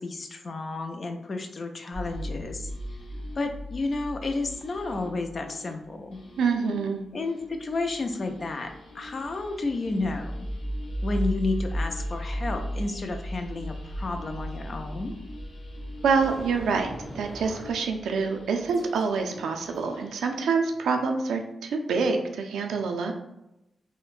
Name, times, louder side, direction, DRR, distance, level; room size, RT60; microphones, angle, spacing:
voice 1, 0.0-2.7 3.4-6.2 7.1-10.5 11.0-15.2, left 3 dB, 50° left, 5 dB, 0.4 m, -31 dB
sound 1, 1.9-20.4, equal, 90° left, 0.9 m, -37 dB
voice 2, 6.4-7.0 16.0-23.1, right 5 dB, 85° right, 4 dB, 0.4 m, -26 dB
sound 2, 16.1-17.9 18.7-19.2 19.7-19.8, right 1 dB, 25° right, 0.5 m, -42 dB
3.7 x 2.1 x 2.4 m, 0.89 s
cardioid pair, 60°, 0 cm